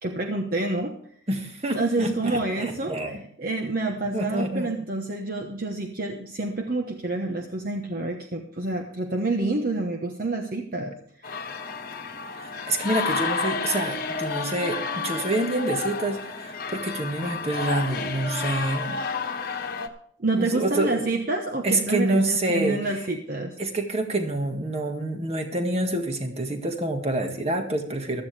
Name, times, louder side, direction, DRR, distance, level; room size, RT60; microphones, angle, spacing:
voice 1, 0.0-0.9 1.7-11.3 20.2-23.6, right 2 dB, 50° right, 3 dB, 1.1 m, -28 dB
voice 2, 1.3-3.2 4.1-4.7 12.4-19.0 20.4-21.0 21.6-22.8 23.6-28.2, right 2 dB, 30° right, 4 dB, 1.8 m, -27 dB
sound 1, 11.2-19.9, left 4 dB, 50° left, 1.2 m, -31 dB
15.5 x 12.5 x 3.4 m, 0.63 s
head